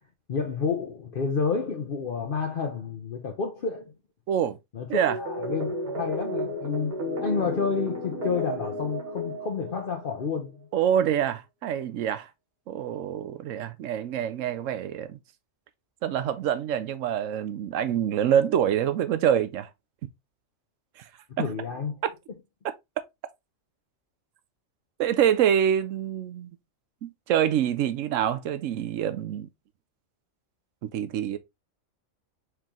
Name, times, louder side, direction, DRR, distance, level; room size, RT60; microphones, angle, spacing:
voice 1, 0.3-3.9 4.7-6.9 7.2-10.7 21.3-22.0, left 5 dB, 50° left, 0.8 m, -30 dB
voice 2, 4.3-4.6 4.9-5.2 10.7-12.3 12.7-15.2 16.0-19.7 21.4-21.5 25.0-26.5 27.0-29.5 30.8-31.4, right 9 dB, 75° right, 0.9 m, -26 dB
sound 1, 5.1-10.2, left 1 dB, 50° right, 1.6 m, -33 dB
4.6 x 3.7 x 2.9 m
omnidirectional pair, 1.4 m